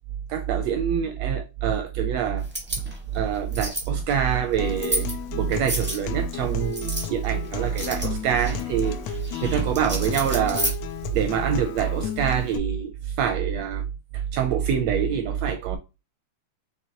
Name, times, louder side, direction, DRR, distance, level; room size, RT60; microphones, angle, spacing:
voice 1, 0.3-2.4 3.1-10.7 11.1-13.9 14.1-15.8, right 8 dB, 80° right, 1.5 m, -25 dB
sound 1, 2.4-11.3, right 1 dB, 10° right, 0.4 m, -33 dB
Acoustic guitar, 4.6-12.6, left 11 dB, 80° left, 1.5 m, -35 dB
5.9 x 3.2 x 2.8 m
omnidirectional pair, 3.4 m